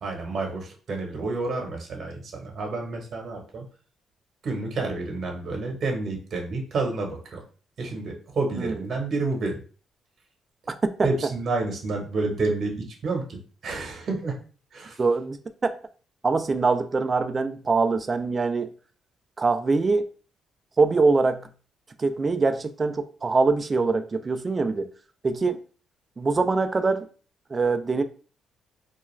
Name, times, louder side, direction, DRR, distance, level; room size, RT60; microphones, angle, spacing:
voice 1, 0.0-3.6 4.4-7.4 7.8-9.6 11.0-14.4 14.7-15.0, right 3 dB, 55° right, 0.9 m, -29 dB
voice 2, 10.7-11.1 15.0-15.4 15.6-15.7 16.2-18.7 19.4-20.1 20.8-21.5 22.0-24.9 25.2-25.6 26.2-27.1 27.5-28.0, right 4 dB, 30° right, 0.3 m, -23 dB
2.3 x 2.2 x 3.0 m
cardioid pair, 90°, 0 cm